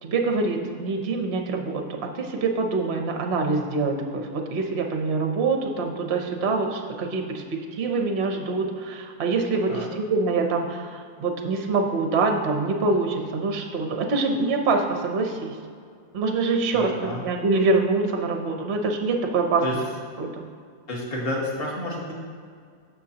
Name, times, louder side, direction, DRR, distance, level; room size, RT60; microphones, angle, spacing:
voice 1, 0.0-15.6 16.1-19.6 20.2-20.4, right 3 dB, 55° right, 3 dB, 0.7 m, -25 dB
voice 2, 16.7-17.2 19.6-19.8 20.9-22.2, left 1 dB, 35° left, -3 dB, 1.6 m, -30 dB
15.5 x 6.5 x 2.9 m, 2.1 s
omnidirectional pair, 2.0 m